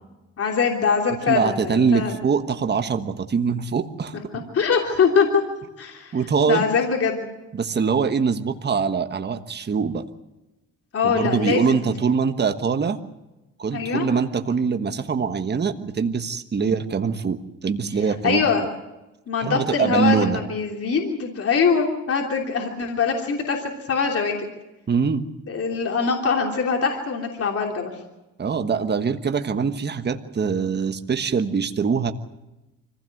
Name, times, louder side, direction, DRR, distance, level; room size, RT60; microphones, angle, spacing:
voice 1, 0.4-2.1 4.5-5.4 5.8-6.1 6.5-7.2 10.9-11.9 13.7-14.1 16.6-16.7 18.2-18.6 19.3-24.3 25.5-27.9, left 5 dB, 50° left, 1 dB, 3.2 m, -23 dB
voice 2, 1.3-4.4 6.1-6.7 7.5-10.0 11.0-13.0 13.6-18.4 19.4-20.4 24.9-25.2 28.4-32.1, right 5 dB, 35° right, 8 dB, 1.4 m, -23 dB
25.5 x 16.0 x 7.8 m, 1.0 s
cardioid pair, 90°, 30 cm